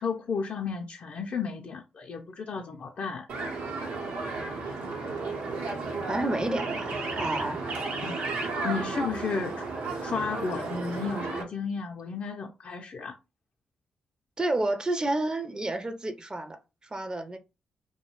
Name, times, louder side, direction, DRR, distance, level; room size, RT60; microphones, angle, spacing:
voice 1, 0.0-3.3 8.0-8.2 8.6-9.5 10.0-13.1, left 5 dB, 60° left, 0.4 m, -33 dB
sound 1, 3.3-11.4, right 3 dB, 75° right, 0.7 m, -33 dB
voice 2, 6.1-7.6 14.4-17.4, right 2 dB, 25° right, 0.4 m, -30 dB
2.3 x 2.1 x 2.9 m
supercardioid pair, 45°, 3 cm